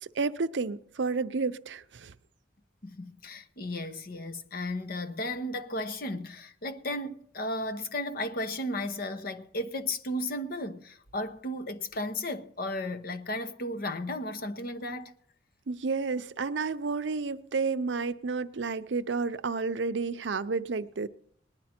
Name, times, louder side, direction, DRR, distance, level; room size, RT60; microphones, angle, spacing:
voice 1, 0.0-2.1 15.7-21.1, right 4 dB, 80° right, 0.6 m, -31 dB
voice 2, 2.8-15.1, left 1 dB, 55° left, 0.9 m, -34 dB
19.5 x 10.5 x 4.4 m
head